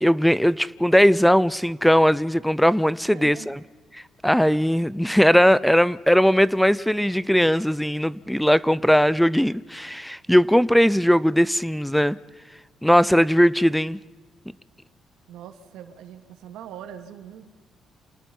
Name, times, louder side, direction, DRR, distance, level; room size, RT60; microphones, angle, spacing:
voice 1, 0.0-3.6 3.9-12.2 12.8-14.0, equal, ahead, 20 dB, 0.5 m, -19 dB
voice 2, 3.0-3.5 15.3-17.5, right 9 dB, 90° right, 7 dB, 2.5 m, -42 dB
28.5 x 19.0 x 5.6 m, 1.3 s
cardioid pair, 90°, 0 cm